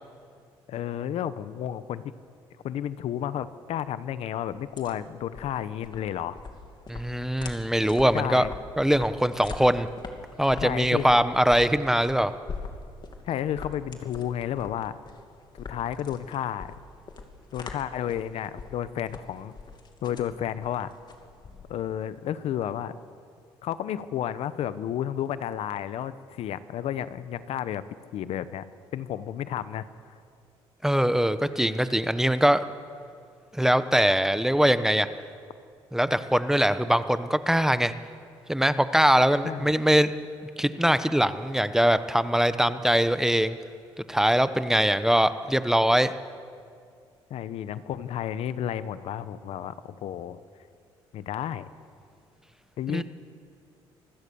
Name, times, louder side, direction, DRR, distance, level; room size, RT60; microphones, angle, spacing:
voice 1, 0.7-2.0 2.6-6.4 8.1-8.5 10.6-11.1 13.2-15.0 15.7-16.7 17.5-19.5 20.0-20.9 21.7-22.9 23.6-27.8 28.1-28.6 28.9-30.1 39.4-39.7 47.3-50.4 51.1-51.7 52.8-53.0, left 10 dB, 70° left, 14 dB, 0.9 m, -32 dB
sound 1, 4.5-22.0, left 4 dB, 45° left, 2.5 m, -43 dB
voice 2, 6.9-8.5 8.8-9.9 10.4-12.3 30.8-32.7 33.5-35.1 35.9-37.9 38.5-40.1 40.6-43.6 44.1-46.1 52.9-53.0, equal, 5° right, 12 dB, 1.0 m, -22 dB
25.5 x 16.0 x 7.0 m, 2.2 s
cardioid pair, 85°, 11 cm